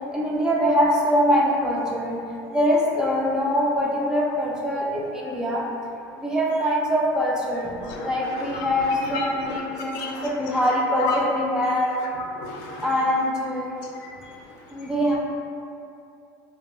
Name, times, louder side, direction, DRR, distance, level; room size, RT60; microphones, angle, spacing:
voice 1, 0.1-2.2 2.5-5.6 6.2-7.7 8.0-11.9 12.8-13.7 14.7-15.2, equal, 5° right, -4 dB, 0.3 m, -23 dB
voice 2, 7.7-11.2 11.8-12.9 13.7-14.9, left 3 dB, 70° left, -1 dB, 0.5 m, -34 dB
2.5 x 2.2 x 3.0 m, 2.6 s
supercardioid pair, 115°, 10 cm